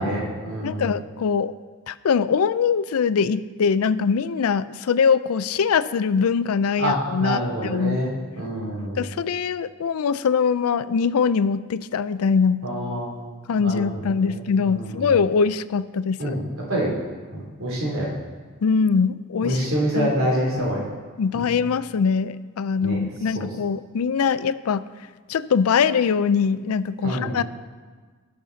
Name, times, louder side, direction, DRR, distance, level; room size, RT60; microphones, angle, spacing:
voice 1, 0.0-0.9 6.8-8.1 8.4-9.1 12.6-13.2 13.6-13.9 14.6-15.1 16.2-16.4 16.7-17.0 17.3-18.1 19.4-20.9 21.3-21.5 22.8-23.0 23.3-23.5 27.0-27.4, equal, 70° right, -3 dB, 3.1 m, -26 dB
voice 2, 0.6-1.5 1.9-8.0 9.0-12.6 13.5-16.4 18.6-19.6 20.0-20.1 21.2-24.9 25.3-27.4, left 6 dB, 80° left, 15 dB, 0.4 m, -22 dB
17.5 x 6.6 x 4.0 m, 1.5 s
head